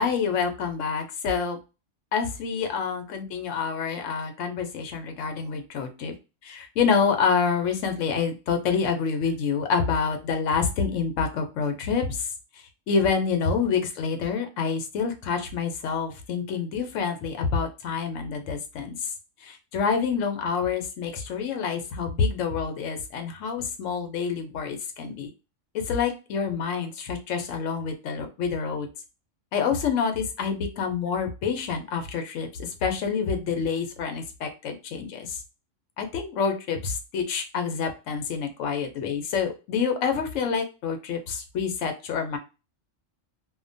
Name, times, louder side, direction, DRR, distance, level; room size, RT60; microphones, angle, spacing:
voice 1, 0.0-1.6 2.1-6.1 6.4-12.1 12.9-19.0 19.5-25.3 25.7-28.9 29.5-35.3 36.0-42.4, left 6 dB, 80° left, 5 dB, 1.0 m, -27 dB
2.8 x 2.1 x 2.5 m, 0.29 s
omnidirectional pair, 1.3 m